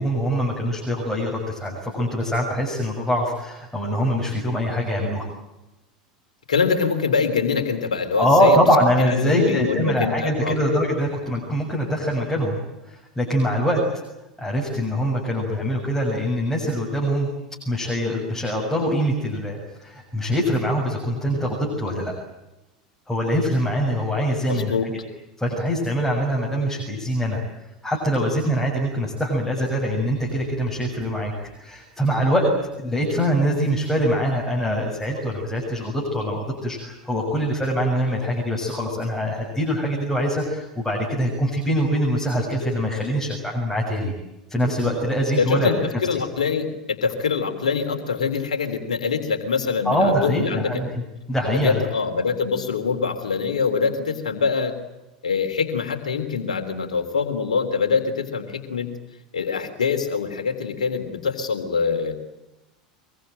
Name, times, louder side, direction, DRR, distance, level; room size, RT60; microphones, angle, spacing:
voice 1, 0.0-5.3 8.2-12.6 12.9-13.8 14.4-17.3 17.7-22.1 23.1-24.9 25.4-27.4 27.8-32.5 32.8-44.1 44.5-45.7 49.8-51.0 51.3-51.8, equal, 5° left, -2 dB, 7.2 m, -23 dB
voice 2, 6.5-8.6 9.0-10.6 21.3-21.4 24.5-24.9 37.1-37.2 45.4-50.8 51.5-54.7 55.2-58.9 59.3-62.1, left 5 dB, 70° left, 6 dB, 3.5 m, -24 dB
24.5 x 22.5 x 9.2 m, 0.96 s
figure-of-eight pair, 80°, 4 cm